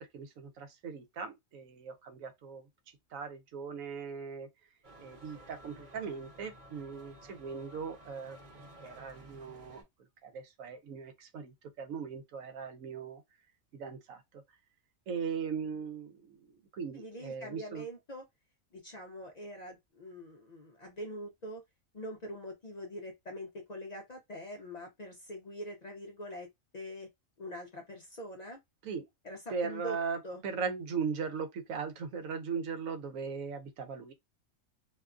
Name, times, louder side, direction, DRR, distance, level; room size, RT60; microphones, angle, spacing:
voice 1, 0.1-2.6 3.1-4.5 5.0-9.8 10.2-13.2 13.7-14.2 15.1-17.8 28.8-29.0 29.5-34.1, right 5 dB, 80° right, 1.0 m, -39 dB
sound 1, 4.8-9.8, equal, 40° right, 0.9 m, -54 dB
voice 2, 16.9-18.2 18.7-21.6 21.9-26.5 26.7-27.1 27.4-28.6 29.2-30.0 30.2-30.4, equal, 60° left, 0.4 m, -44 dB
2.6 x 2.2 x 2.4 m
omnidirectional pair, 1.4 m